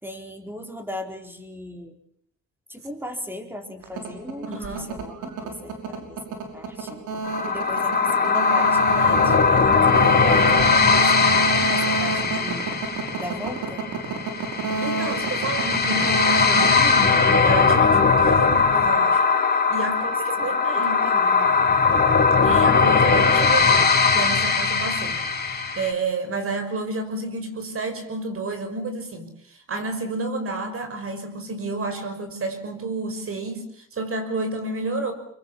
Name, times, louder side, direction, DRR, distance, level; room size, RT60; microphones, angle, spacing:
voice 1, 0.0-2.0 2.7-7.1 7.5-12.7 13.2-13.9 19.8-21.6, left 1 dB, 5° right, 5 dB, 4.5 m, -37 dB
sound 1, 3.8-17.7, right 4 dB, 90° right, 5.6 m, -29 dB
voice 2, 4.5-4.9 14.8-17.2 17.4-19.2 19.7-21.0 22.4-35.1, right 2 dB, 45° right, 7 dB, 6.0 m, -30 dB
sound 2, 7.2-25.9, left 5 dB, 30° left, 3.6 m, -20 dB
24.0 x 23.5 x 7.4 m, 0.65 s
cardioid pair, 90°, 30 cm